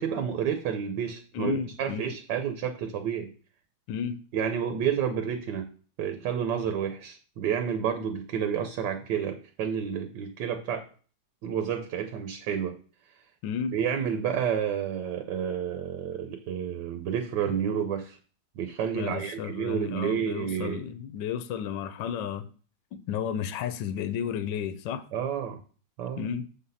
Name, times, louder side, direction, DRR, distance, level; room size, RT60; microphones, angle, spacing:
voice 1, 0.0-3.3 4.3-5.7 6.0-10.8 11.4-12.7 13.7-18.2 18.6-20.8 25.1-25.6 26.0-26.3, right 8 dB, 75° right, 7 dB, 1.5 m, -30 dB
voice 2, 1.3-2.1 3.9-4.2 13.4-13.7 18.9-22.5 22.9-25.0 26.2-26.5, left 8 dB, 80° left, 12 dB, 1.3 m, -32 dB
7.1 x 4.1 x 5.5 m, 0.39 s
omnidirectional pair, 2.0 m